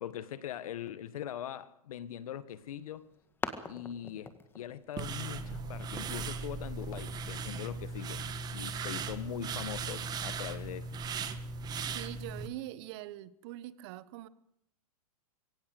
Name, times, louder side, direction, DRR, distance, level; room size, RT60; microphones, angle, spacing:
voice 1, 0.0-3.1 3.7-11.0, left 10 dB, 70° left, 1.7 m, -41 dB
sound 1, 2.5-7.6, left 4 dB, 10° left, 1.9 m, -46 dB
sound 2, 5.0-12.5, right 4 dB, 20° right, 1.8 m, -38 dB
voice 2, 11.9-14.3, right 15 dB, 45° right, 1.4 m, -43 dB
22.5 x 17.5 x 8.0 m
hypercardioid pair, 140°, 19 cm